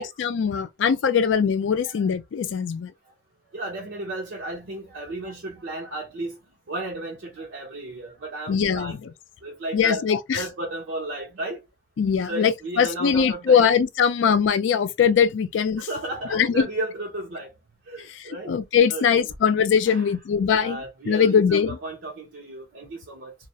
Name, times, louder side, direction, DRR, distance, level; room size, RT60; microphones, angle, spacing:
voice 1, 0.0-2.9 8.5-8.9 9.7-10.4 12.0-12.5 12.8-15.9 16.3-16.7 18.2-21.8, left 7 dB, 85° left, 0.3 m, -21 dB
voice 2, 3.5-6.4 6.7-9.0 9.4-10.0 10.3-11.6 12.3-13.7 15.8-17.6 17.9-18.5 18.9-19.2 19.9-20.1 20.5-23.4, right 2 dB, 80° right, 0.6 m, -34 dB
2.3 x 2.0 x 2.6 m
head